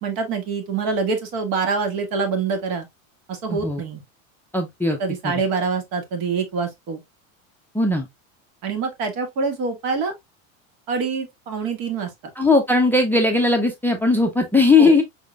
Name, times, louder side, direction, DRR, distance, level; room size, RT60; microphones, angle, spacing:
voice 1, 0.0-2.9 3.3-4.0 5.0-7.0 8.6-10.1 10.9-12.1 14.8-14.9, right 4 dB, 60° right, 1.8 m, -25 dB
voice 2, 3.5-3.8 4.5-5.0 5.2-5.4 7.7-8.1 12.4-15.0, left 3 dB, 5° left, 0.5 m, -18 dB
4.9 x 3.6 x 2.4 m
supercardioid pair, 135°, 40 cm